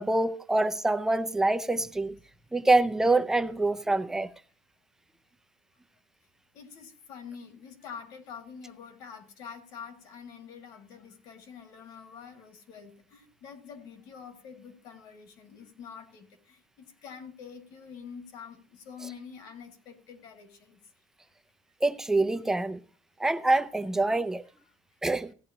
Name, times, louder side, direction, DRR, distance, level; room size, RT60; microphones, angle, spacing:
voice 1, 0.0-2.1 2.5-4.3 21.8-22.8 23.2-24.4 25.0-25.3, right 2 dB, 5° right, 0.5 m, -25 dB
voice 2, 6.5-20.8, left 6 dB, 55° left, 2.1 m, -46 dB
15.5 x 10.5 x 2.9 m
cardioid pair, 170°, 8 cm